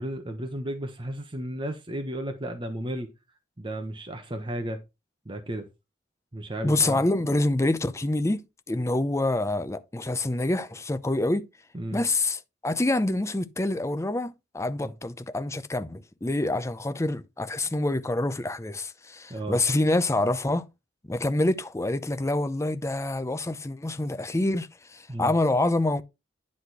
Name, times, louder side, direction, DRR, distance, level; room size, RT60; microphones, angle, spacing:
voice 1, 0.0-3.1 3.6-4.8 5.2-5.7 6.3-7.0 11.7-12.0 14.8-14.9 19.3-19.6 25.1-25.3, right 1 dB, 25° right, 1.0 m, -33 dB
voice 2, 6.6-11.5 11.9-20.7 21.1-26.0, left 2 dB, 15° left, 0.6 m, -26 dB
10.0 x 4.2 x 4.7 m
head